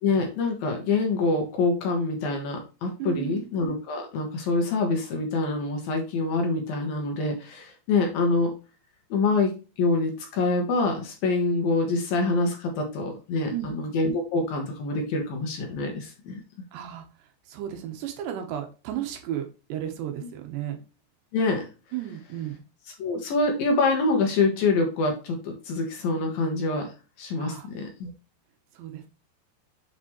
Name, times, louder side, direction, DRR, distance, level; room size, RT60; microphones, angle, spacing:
voice 1, 0.0-8.5 9.1-16.4 20.2-20.3 21.3-21.7 23.0-28.1, left 3 dB, 65° left, 2 dB, 2.7 m, -26 dB
voice 2, 3.0-3.5 13.5-13.7 16.7-17.0 17.5-19.4 19.7-20.8 21.9-22.6 27.4-27.7 28.7-29.1, right 11 dB, 80° right, 4 dB, 3.2 m, -33 dB
7.4 x 5.1 x 3.1 m, 0.32 s
omnidirectional pair, 5.1 m